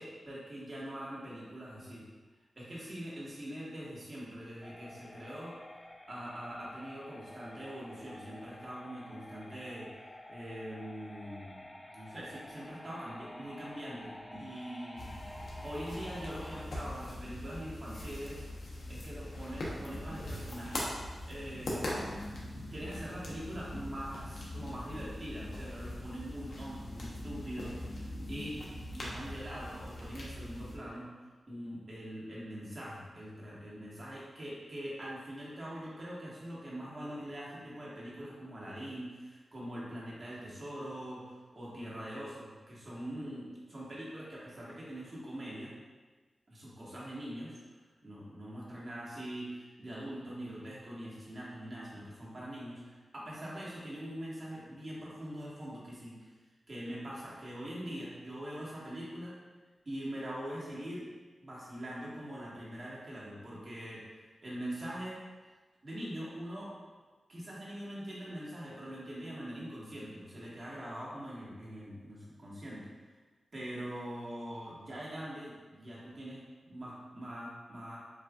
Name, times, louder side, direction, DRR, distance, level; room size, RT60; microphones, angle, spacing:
voice 1, 0.0-2.0 2.5-5.6 6.1-9.9 10.3-11.6 11.9-15.1 15.6-20.9 21.3-21.9 22.7-28.6 28.9-45.7 46.5-56.3 56.7-59.4 59.8-61.1 61.4-65.2 65.8-66.7 67.3-72.8 73.5-78.0, equal, 45° right, -6 dB, 1.4 m, -43 dB
sound 1, 4.6-16.6, left 1 dB, 20° left, 0.4 m, -50 dB
sound 2, 15.0-30.8, left 1 dB, 75° left, 0.9 m, -41 dB
7.2 x 2.5 x 2.4 m, 1.3 s
cardioid pair, 75°, 0 cm